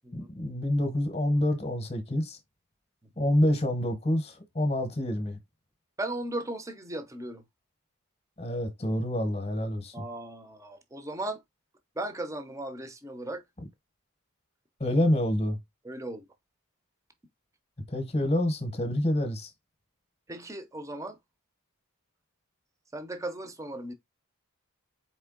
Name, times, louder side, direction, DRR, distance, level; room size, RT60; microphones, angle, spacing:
voice 1, 0.1-2.4 3.2-5.4 8.4-10.1 14.8-15.6 17.9-19.5, left 1 dB, 25° left, 0.9 m, -27 dB
voice 2, 6.0-7.4 9.9-11.4 12.0-13.4 15.8-16.2 20.3-21.2 22.9-23.9, right 1 dB, 15° right, 0.6 m, -37 dB
4.4 x 3.2 x 3.7 m
head